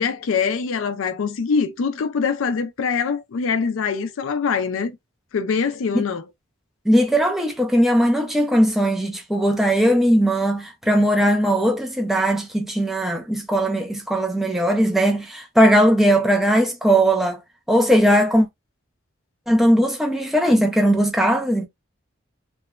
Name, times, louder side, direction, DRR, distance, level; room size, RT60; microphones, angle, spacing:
voice 1, 0.0-4.9 5.3-6.2, left 5 dB, 75° left, 0.4 m, -23 dB
voice 2, 6.9-17.4 17.7-18.5 19.5-21.7, equal, ahead, 0.4 m, -18 dB
2.9 x 2.1 x 2.2 m
head